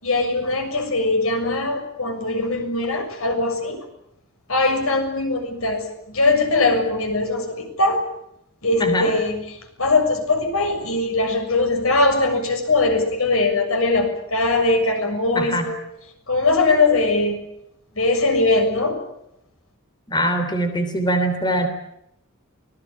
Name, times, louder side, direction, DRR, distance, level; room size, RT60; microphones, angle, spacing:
voice 1, 0.0-3.8 4.5-8.1 8.6-15.8 16.3-17.4 17.9-19.0, left 2 dB, 85° left, 5 dB, 6.9 m, -21 dB
voice 2, 20.1-21.7, right 1 dB, 20° left, 7 dB, 3.4 m, -22 dB
25.0 x 20.0 x 8.6 m, 0.80 s
head